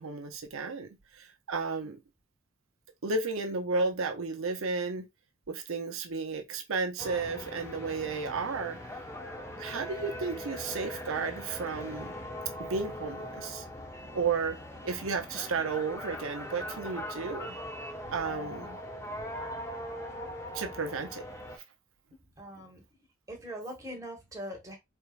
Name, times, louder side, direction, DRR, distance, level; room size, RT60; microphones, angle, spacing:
voice 1, 0.0-2.0 3.0-5.1 5.5-8.8 9.6-12.2 12.6-13.6 14.1-14.6 14.8-17.6 18.1-18.8 20.5-21.2, right 4 dB, 80° right, 0.7 m, -33 dB
sound 1, 7.0-21.6, left 1 dB, 15° left, 0.7 m, -41 dB
voice 2, 18.0-18.7 19.4-19.6 22.4-22.8 23.3-24.8, equal, 15° right, 1.2 m, -43 dB
4.3 x 3.4 x 2.4 m
head